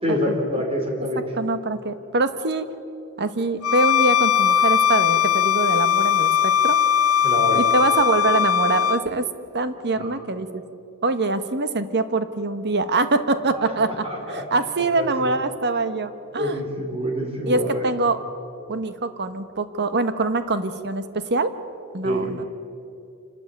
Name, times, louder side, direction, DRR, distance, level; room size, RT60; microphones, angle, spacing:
voice 1, 0.0-1.2 7.2-7.6 10.0-10.1 13.5-13.7 14.0-14.4 15.0-15.3 16.4-17.9 22.0-22.3, equal, 25° right, 1 dB, 4.1 m, -26 dB
voice 2, 1.4-2.7 3.2-6.8 7.5-9.3 9.5-10.6 11.0-16.6 17.5-18.2 18.7-21.5 21.9-22.4, right 3 dB, 50° right, 10 dB, 1.2 m, -24 dB
Bowed string instrument, 3.6-9.0, left 9 dB, 70° left, 0.7 m, -19 dB
27.0 x 13.0 x 9.3 m, 2.6 s
head